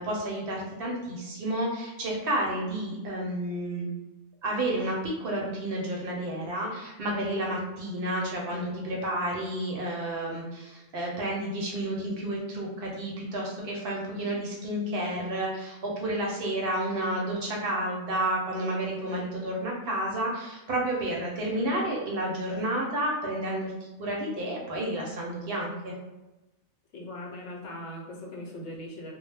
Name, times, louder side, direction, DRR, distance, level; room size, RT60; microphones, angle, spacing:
voice 1, 0.0-3.9 4.4-23.7 24.0-25.9, right 1 dB, 60° right, -2 dB, 0.6 m, -31 dB
voice 2, 26.9-29.1, left 1 dB, 85° left, -1 dB, 1.0 m, -40 dB
2.1 x 2.0 x 3.2 m, 1.1 s
omnidirectional pair, 1.2 m